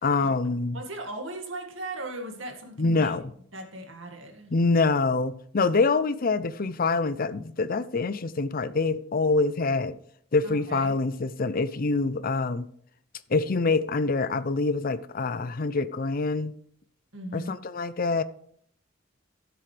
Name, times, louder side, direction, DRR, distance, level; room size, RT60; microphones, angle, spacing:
voice 1, 0.0-0.8 2.8-3.3 4.5-10.0 10.3-12.7 13.3-16.5 17.3-18.2, left 3 dB, 50° left, 0.6 m, -25 dB
voice 2, 0.7-3.1 3.5-4.5 10.4-11.0 17.1-17.6, right 2 dB, 80° right, 2.1 m, -38 dB
14.5 x 7.7 x 3.4 m
head